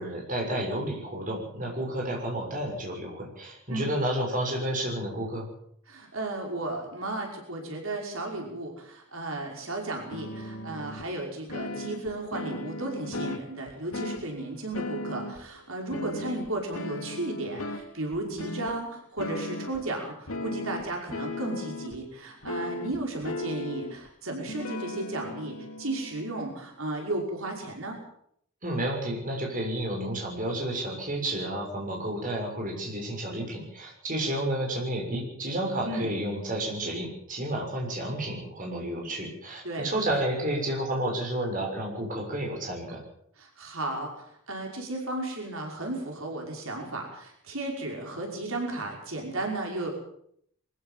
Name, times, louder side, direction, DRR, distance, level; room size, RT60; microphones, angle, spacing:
voice 1, 0.0-5.5 28.6-43.0, right 1 dB, 40° right, 0 dB, 6.7 m, -31 dB
voice 2, 5.9-28.0 35.8-36.1 39.6-39.9 43.4-49.9, right 2 dB, 80° right, 1 dB, 5.6 m, -34 dB
sound 1, 10.1-11.0 11.5-14.3 14.7-15.5 15.9-17.9 18.1-18.7 19.2-19.9 20.3-22.0 22.4-24.1 24.5-26.6, left 2 dB, 90° left, 2.7 m, -36 dB
23.5 x 15.5 x 7.7 m, 0.68 s
head